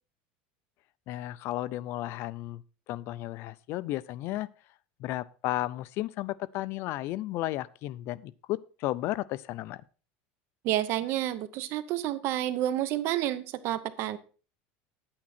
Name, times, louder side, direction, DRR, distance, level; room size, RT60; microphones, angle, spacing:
voice 1, 1.1-2.6 2.9-4.5 5.0-9.8, left 16 dB, 45° left, 17 dB, 0.5 m, -33 dB
voice 2, 10.6-14.2, right 13 dB, 50° right, 14 dB, 0.9 m, -29 dB
9.5 x 8.7 x 4.3 m, 0.37 s
supercardioid pair, 150°, 6 cm